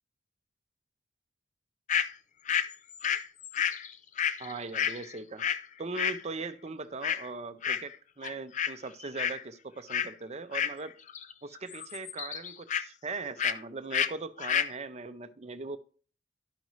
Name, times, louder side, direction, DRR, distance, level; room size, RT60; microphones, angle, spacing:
sound 1, 1.9-2.1 2.5-5.6 5.9-6.2 7.0-7.3 7.6-8.0 8.2-8.7 9.0-9.4 9.9-10.1 10.5-11.3 11.6-12.8 13.4-13.6 13.9-14.1 14.4-14.7, left 8 dB, 40° left, 0.4 m, -30 dB
voice 1, 4.4-5.4 5.8-11.0 11.4-15.8, right 3 dB, 35° right, 0.7 m, -40 dB
13.0 x 5.3 x 3.1 m
head